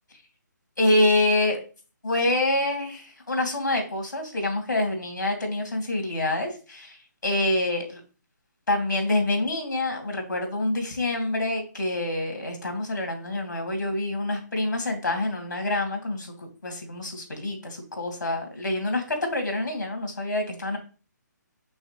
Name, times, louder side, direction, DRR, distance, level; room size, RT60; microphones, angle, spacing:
voice 1, 0.8-1.6 2.0-7.0 7.2-8.0 8.7-20.8, left 2 dB, 80° left, 3 dB, 2.8 m, -26 dB
6.3 x 5.9 x 3.3 m, 0.36 s
figure-of-eight pair, 140°, 10 cm